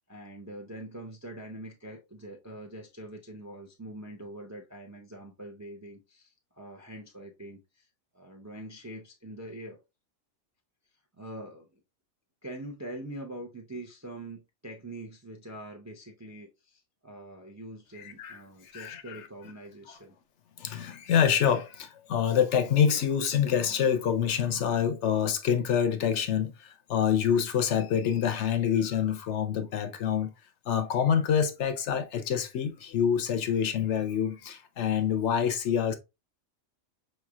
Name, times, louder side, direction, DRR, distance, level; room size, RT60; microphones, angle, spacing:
voice 1, 0.1-7.9 8.1-9.8 11.2-11.8 12.4-20.1, right 1 dB, 25° right, 0.3 m, -44 dB
voice 2, 18.7-19.2 20.6-30.3 30.7-35.9, left 8 dB, 65° left, 0.8 m, -26 dB
4.8 x 3.2 x 2.3 m
omnidirectional pair, 1.4 m